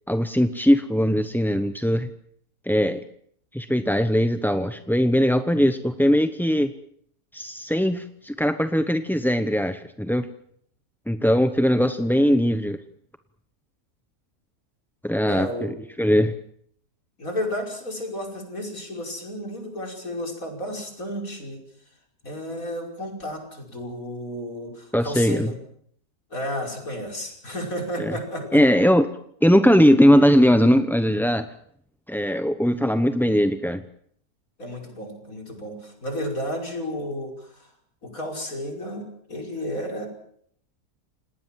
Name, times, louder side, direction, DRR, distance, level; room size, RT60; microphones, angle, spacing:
voice 1, 0.1-2.1 2.7-3.0 3.5-6.7 7.3-10.3 11.1-12.8 15.0-16.3 24.9-25.5 28.0-28.1 28.5-29.1 29.4-31.5 32.1-33.8, equal, ahead, 9 dB, 0.6 m, -20 dB
voice 2, 15.3-15.7 17.2-21.6 22.2-25.6 26.3-28.6 34.6-37.7 38.0-40.1, equal, 55° left, 2 dB, 6.0 m, -32 dB
29.0 x 19.0 x 7.5 m, 0.66 s
omnidirectional pair, 1.7 m